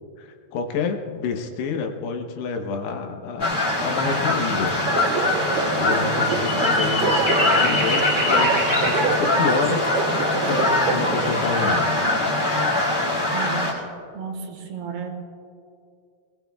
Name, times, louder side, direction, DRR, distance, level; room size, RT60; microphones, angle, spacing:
voice 1, 0.2-4.7 5.7-12.1, left 5 dB, 75° left, 3 dB, 2.9 m, -29 dB
sound 1, 3.4-13.7, left 1 dB, 30° left, 4.4 m, -22 dB
sound 2, 4.7-11.5, right 5 dB, 60° right, 3.2 m, -28 dB
sound 3, 6.3-9.2 10.7-10.8 11.1-11.7, left 1 dB, 10° right, 0.9 m, -27 dB
voice 2, 13.3-13.7 14.1-15.1, right 6 dB, 75° right, 2 dB, 3.3 m, -32 dB
20.5 x 20.5 x 2.3 m, 2.4 s
omnidirectional pair, 4.9 m